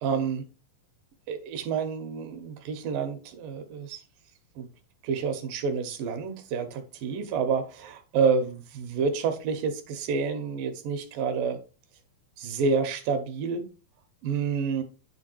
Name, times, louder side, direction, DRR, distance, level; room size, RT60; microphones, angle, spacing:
voice 1, 0.0-0.4 1.3-4.0 4.6-4.7 5.0-11.6 12.4-13.6 14.2-14.8, right 5 dB, 70° right, 2.6 m, -28 dB
9.6 x 3.6 x 4.5 m
omnidirectional pair, 4.4 m